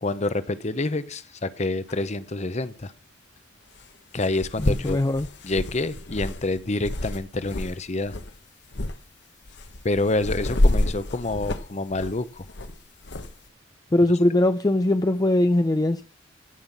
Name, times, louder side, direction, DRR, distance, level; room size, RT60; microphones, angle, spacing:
voice 1, 0.0-2.9 4.1-5.0 5.4-8.2 9.8-12.5, left 2 dB, 35° left, 0.8 m, -27 dB
sound 1, 1.9-2.0 3.8-3.9 4.2-7.8 8.0-8.3 8.7-9.0 9.5-13.3, left 1 dB, 60° left, 1.1 m, -28 dB
voice 2, 4.6-5.3 13.9-16.0, left 1 dB, 20° left, 0.4 m, -21 dB
15.5 x 5.8 x 7.2 m
head